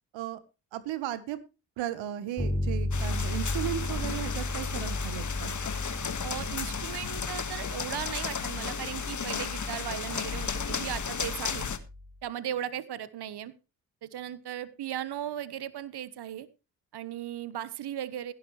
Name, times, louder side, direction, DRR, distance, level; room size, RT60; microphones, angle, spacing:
voice 1, 0.7-1.4 1.8-5.5, right 12 dB, 80° right, 14 dB, 1.3 m, -35 dB
Bass guitar, 2.4-12.1, left 1 dB, ahead, 4.6 m, -35 dB
sound 1, 2.9-11.8, left 6 dB, 40° left, 1.7 m, -34 dB
voice 2, 6.2-11.7 12.2-13.5 14.0-16.5 16.9-18.3, right 11 dB, 60° right, 16 dB, 1.2 m, -37 dB
15.5 x 12.0 x 3.2 m, 0.29 s
supercardioid pair, 55°, 44 cm